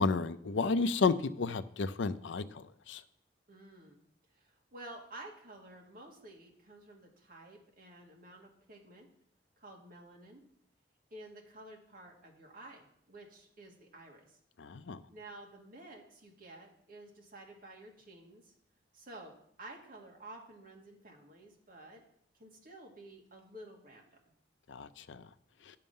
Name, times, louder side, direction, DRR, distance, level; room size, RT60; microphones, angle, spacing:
voice 1, 0.0-2.4 2.9-3.0 14.6-15.0 24.7-25.2, left 4 dB, 85° left, 0.5 m, -31 dB
voice 2, 3.5-4.0 4.4-9.1 9.6-10.4 11.1-14.4 15.1-18.5 18.9-19.3 19.6-22.0 22.4-24.0, right 1 dB, 50° right, 2.0 m, -52 dB
10.5 x 6.6 x 5.5 m
head